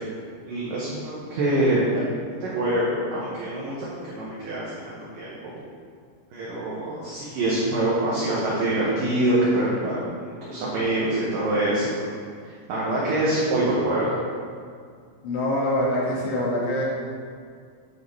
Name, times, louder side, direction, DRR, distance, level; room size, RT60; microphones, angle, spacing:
voice 1, 0.5-2.0 2.4-5.5 6.3-10.0 10.4-12.1 12.7-14.2, right 1 dB, 70° right, -7 dB, 2.1 m, -25 dB
voice 2, 15.2-16.8, left 1 dB, 75° left, -6 dB, 4.1 m, -24 dB
9.0 x 7.8 x 3.2 m, 2.1 s
omnidirectional pair, 5.5 m